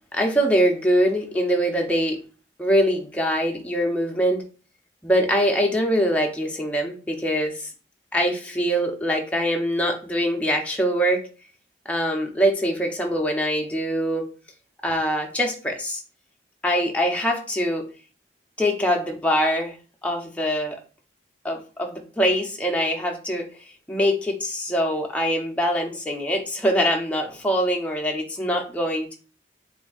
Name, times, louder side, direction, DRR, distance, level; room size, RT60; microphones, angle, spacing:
voice 1, 0.1-2.2 2.6-4.4 5.0-7.7 8.1-11.2 11.9-14.2 14.8-16.0 16.6-17.8 18.6-19.7 20.0-20.8 21.4-23.5 23.9-29.2, equal, 10° left, 1 dB, 0.6 m, -23 dB
7.1 x 2.6 x 2.4 m, 0.37 s
head